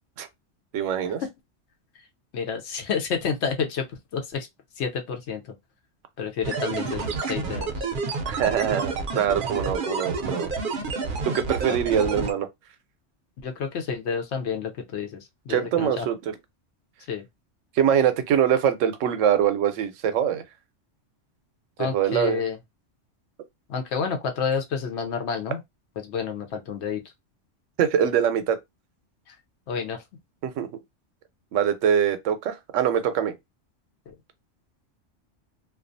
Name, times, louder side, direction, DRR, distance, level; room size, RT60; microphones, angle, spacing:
voice 1, 0.7-1.2 8.3-10.5 11.2-12.5 15.5-16.2 17.8-20.4 21.8-22.4 27.8-28.6 30.4-30.7 31.5-33.3, right 9 dB, 85° right, 0.9 m, -23 dB
voice 2, 2.3-3.9 4.1-4.5 4.8-5.5 6.2-7.9 11.7-11.8 13.4-16.1 17.1-17.2 21.8-22.6 23.7-25.6 26.0-27.0 29.3-29.4 29.7-30.0 34.1-34.2, left 6 dB, 70° left, 0.9 m, -29 dB
sound 1, 6.4-12.3, right 4 dB, 55° right, 0.6 m, -29 dB
2.4 x 2.3 x 2.5 m
omnidirectional pair, 1.3 m